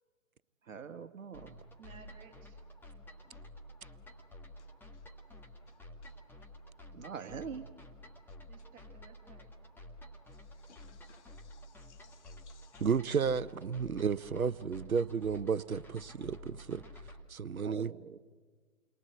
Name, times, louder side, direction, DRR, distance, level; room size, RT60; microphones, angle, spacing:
voice 1, 0.7-1.6 6.9-7.6 17.6-18.2, right 6 dB, 65° right, 1.5 m, -44 dB
sound 1, 1.3-17.2, left 1 dB, 5° left, 1.9 m, -51 dB
voice 2, 1.8-2.6 7.1-7.7 8.5-9.5, right 6 dB, 20° right, 4.8 m, -57 dB
voice 3, 4.6-5.1 5.7-6.1 10.3-12.9, left 7 dB, 55° left, 1.6 m, -64 dB
voice 4, 12.8-16.8 17.3-17.9, right 6 dB, 90° right, 0.8 m, -32 dB
29.5 x 23.0 x 7.9 m
figure-of-eight pair, 135°, 41 cm